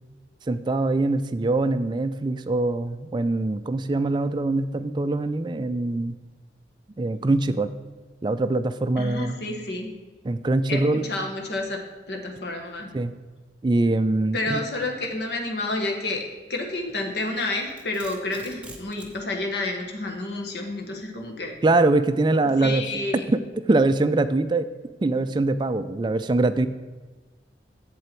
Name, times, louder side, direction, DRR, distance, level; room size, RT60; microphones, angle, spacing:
voice 1, 0.5-6.2 7.0-7.7 8.2-9.4 10.2-11.0 12.9-13.1 13.6-14.6 21.6-22.8 23.3-23.4 23.7-24.7 25.0-26.7, right 2 dB, 25° right, 11 dB, 0.3 m, -23 dB
voice 2, 9.0-9.9 10.7-11.8 12.1-12.9 14.3-16.2 16.5-21.5 22.6-23.2, left 2 dB, 65° left, 2 dB, 1.3 m, -29 dB
Domestic sounds home sounds, 17.3-19.2, right 2 dB, 5° right, 0.8 m, -45 dB
8.0 x 7.8 x 4.4 m, 1.3 s
head